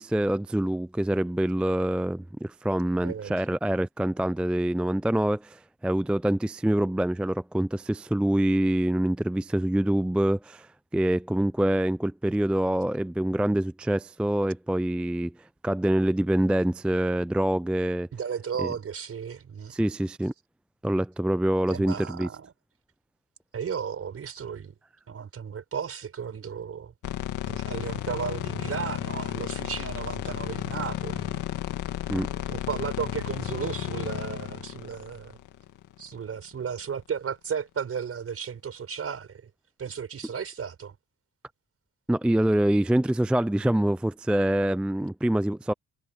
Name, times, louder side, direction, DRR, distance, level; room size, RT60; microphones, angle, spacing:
voice 1, 0.0-15.3 15.6-18.1 18.6-18.7 19.7-20.3 20.8-22.3 32.1-32.3 42.1-45.7, right 1 dB, 5° right, 0.4 m, -25 dB
voice 2, 3.0-3.3 18.1-19.7 21.7-22.5 23.5-24.7 25.1-26.9 27.4-31.4 32.2-35.4 36.0-39.5 39.8-40.9, right 7 dB, 50° right, 5.8 m, -34 dB
sound 1, 27.0-36.2, left 13 dB, 80° left, 2.2 m, -33 dB
cardioid pair, 90°, 30 cm